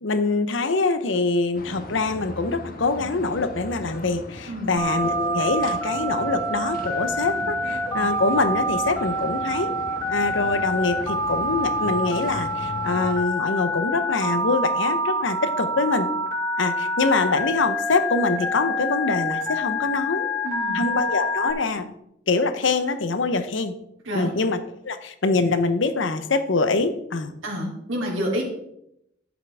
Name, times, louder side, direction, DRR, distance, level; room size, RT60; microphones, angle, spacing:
voice 1, 0.0-9.7 10.1-16.1 16.6-20.3 20.7-21.9 22.3-23.7 24.1-24.6 24.8-27.4, left 3 dB, 70° left, 10 dB, 0.8 m, -24 dB
sound 1, 1.5-13.2, left 1 dB, 45° left, 1.2 m, -38 dB
Telephone, 4.8-21.5, equal, 15° left, 2.6 m, -26 dB
voice 2, 20.4-20.8 24.0-24.3 27.4-28.4, equal, 90° right, -3 dB, 3.0 m, -28 dB
11.5 x 7.4 x 3.5 m, 0.78 s
head